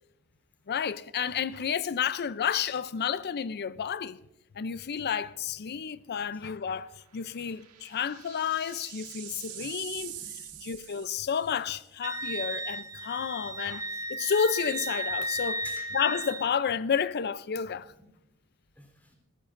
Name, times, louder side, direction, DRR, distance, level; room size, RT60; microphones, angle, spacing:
voice 1, 0.7-4.2 4.5-10.1 10.6-13.8 14.1-15.6 15.9-17.9, left 7 dB, 45° left, 0.5 m, -31 dB
sound 1, 4.8-5.1 5.5-5.6 7.0-11.7, right 11 dB, 85° right, 1.7 m, -44 dB
voice 2, 9.3-10.6 15.6-15.9 18.0-18.1 18.8-19.1, left 1 dB, 10° left, 3.6 m, -52 dB
Wind instrument woodwind instrument, 12.0-16.5, right 1 dB, 15° right, 0.7 m, -34 dB
26.0 x 15.0 x 2.6 m
head